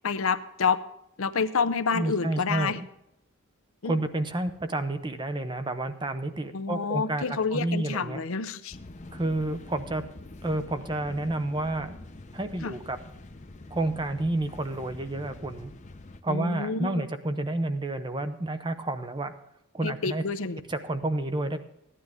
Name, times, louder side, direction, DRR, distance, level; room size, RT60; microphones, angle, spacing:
voice 1, 0.0-0.8 1.2-2.8 3.8-4.0 6.5-8.8 12.6-12.7 16.3-17.0 19.8-20.6, left 5 dB, 70° left, 11 dB, 0.6 m, -28 dB
voice 2, 1.9-2.8 3.8-8.2 9.1-10.0 10.4-11.9 12.3-13.0 13.7-15.7 16.2-19.3 19.7-20.2 20.7-21.6, right 2 dB, 20° right, 9 dB, 0.7 m, -30 dB
sound 1, 8.7-16.2, left 2 dB, 35° left, 0.7 m, -45 dB
15.0 x 10.0 x 3.5 m, 0.81 s
head